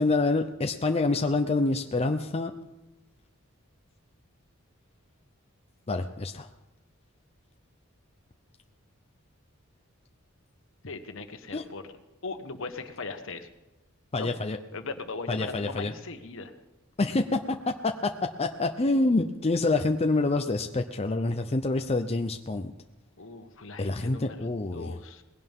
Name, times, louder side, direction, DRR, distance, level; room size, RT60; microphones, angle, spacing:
voice 1, 0.0-2.5 5.9-6.5 11.5-11.6 14.1-14.6 15.3-15.9 17.0-17.6 17.8-18.1 18.4-22.7 23.8-24.9, left 2 dB, 30° left, 6 dB, 0.6 m, -27 dB
voice 2, 10.8-11.8 12.2-13.5 14.2-14.3 14.7-16.5 23.2-25.2, left 3 dB, 65° left, 7 dB, 1.4 m, -39 dB
20.0 x 16.5 x 3.7 m, 1.1 s
head